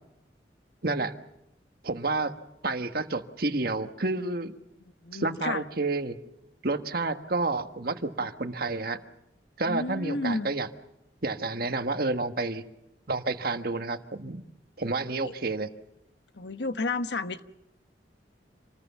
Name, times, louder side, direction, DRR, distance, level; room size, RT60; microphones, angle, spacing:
voice 1, 0.8-1.2 1.8-2.3 2.6-4.5 5.1-6.2 6.6-9.0 9.6-10.7 11.2-12.6 13.1-14.4 14.8-15.7, right 3 dB, 60° right, 8 dB, 1.5 m, -29 dB
voice 2, 4.8-5.6 9.7-10.5 15.2-15.3 16.3-17.4, left 2 dB, 80° left, 10 dB, 1.2 m, -32 dB
27.5 x 20.0 x 7.2 m, 0.84 s
head